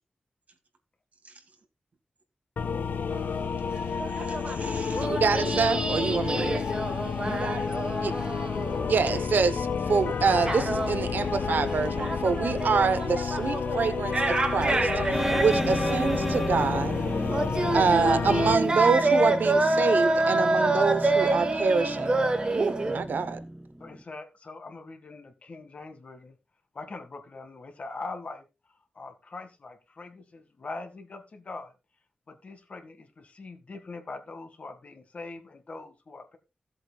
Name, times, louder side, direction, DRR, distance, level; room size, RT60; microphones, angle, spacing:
sound 1, 2.6-18.6, left 6 dB, 80° left, 0.7 m, -30 dB
sound 2, 3.1-3.5 3.7-9.5 9.9-23.0, right 2 dB, 30° right, 1.2 m, -28 dB
voice 1, 3.6-5.6 6.4-6.5 7.1-8.3, right 3 dB, 55° right, 2.0 m, -41 dB
voice 2, 5.1-6.6 8.0-8.1 8.9-14.9 15.4-17.0 17.7-23.4, right 5 dB, 85° right, 0.9 m, -26 dB
sound 3, 15.1-24.0, right 1 dB, 10° right, 0.4 m, -33 dB
voice 3, 23.8-26.4 26.7-28.4 29.0-31.7 32.3-36.4, left 3 dB, 45° left, 1.9 m, -42 dB
16.0 x 7.9 x 2.4 m
wide cardioid pair, 160°, 3 cm